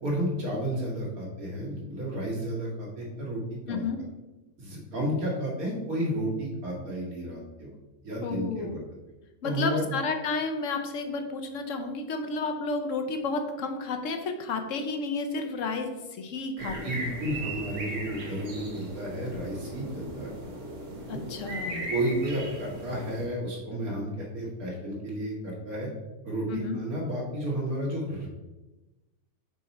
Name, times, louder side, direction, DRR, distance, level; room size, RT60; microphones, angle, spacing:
voice 1, 0.0-3.9 4.6-7.7 8.0-8.8 9.4-9.9 16.6-20.3 21.9-25.9 26.2-28.3, right 1 dB, 85° right, -3 dB, 2.2 m, -32 dB
voice 2, 3.7-4.0 8.2-8.7 9.4-16.9 21.1-21.9 26.5-26.8, left 3 dB, 65° left, 5 dB, 1.0 m, -31 dB
sound 1, 16.6-23.2, right 1 dB, 60° right, 1.5 m, -37 dB
5.6 x 4.5 x 4.1 m, 1.1 s
omnidirectional pair, 1.5 m